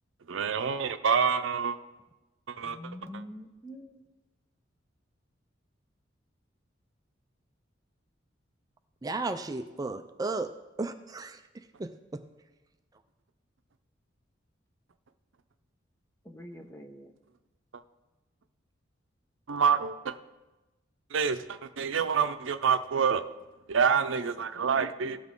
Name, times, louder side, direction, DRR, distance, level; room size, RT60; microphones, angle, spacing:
voice 1, 0.3-1.8 2.5-2.8 19.5-20.1 21.1-23.2 23.7-25.2, right 6 dB, 80° right, 11 dB, 0.6 m, -27 dB
voice 2, 2.6-4.0 16.2-17.1, left 1 dB, 15° left, 4 dB, 0.8 m, -45 dB
voice 3, 9.0-10.5 10.8-12.2, right 3 dB, 20° right, 8 dB, 0.4 m, -35 dB
17.0 x 6.0 x 3.7 m, 1.1 s
head